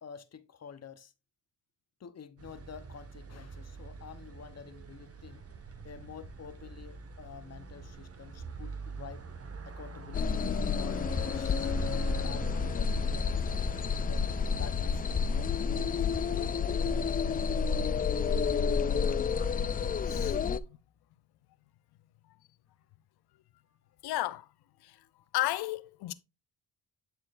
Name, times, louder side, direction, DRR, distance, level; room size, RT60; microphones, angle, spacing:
voice 1, 0.0-1.1 2.0-5.4 5.8-9.2 9.6-10.5 10.7-13.4 14.0-16.8, left 7 dB, 40° left, 0.8 m, -49 dB
sound 1, 2.4-19.6, right 4 dB, 35° right, 1.3 m, -45 dB
sound 2, 10.1-20.6, left 6 dB, 25° left, 0.3 m, -30 dB
voice 2, 20.0-20.8 24.0-24.5 24.8-25.0 25.3-26.1, left 16 dB, 75° left, 0.6 m, -34 dB
11.0 x 4.4 x 2.5 m
supercardioid pair, 70°, 39 cm